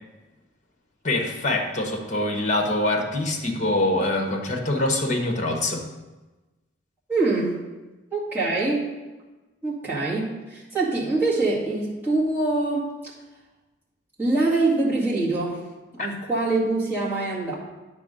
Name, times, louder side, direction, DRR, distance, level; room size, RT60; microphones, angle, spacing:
voice 1, 1.0-5.8, left 1 dB, 40° left, 2 dB, 1.0 m, -24 dB
voice 2, 7.1-7.6 8.1-8.9 9.6-13.1 14.2-15.6 15.9-17.6, right 2 dB, 10° right, -9 dB, 2.1 m, -24 dB
9.2 x 3.6 x 6.5 m, 1.1 s
head